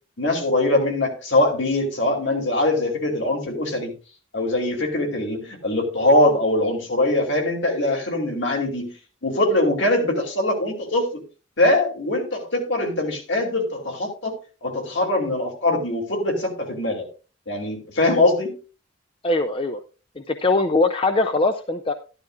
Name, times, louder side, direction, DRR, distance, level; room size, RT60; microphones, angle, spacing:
voice 1, 0.2-3.9 4.3-8.9 9.2-11.2 11.6-17.0 17.5-18.6, left 1 dB, 65° left, 2 dB, 2.9 m, -22 dB
voice 2, 19.2-19.8 20.2-21.9, left 2 dB, 25° left, 7 dB, 0.5 m, -21 dB
12.5 x 12.0 x 2.5 m, 0.34 s
head